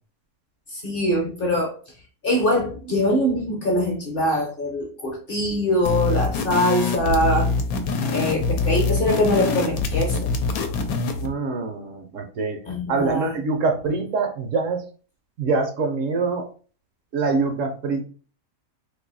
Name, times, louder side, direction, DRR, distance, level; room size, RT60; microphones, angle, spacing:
voice 1, 0.7-1.7 2.2-7.5 8.1-10.3 12.7-13.3, left 1 dB, 45° left, 0.9 m, -23 dB
sound 1, 5.8-11.3, left 3 dB, 80° left, 1.1 m, -24 dB
voice 2, 11.2-12.6 12.9-14.8 15.4-16.5 17.1-18.0, right 4 dB, 65° right, 0.9 m, -24 dB
2.7 x 2.6 x 3.9 m
omnidirectional pair, 1.6 m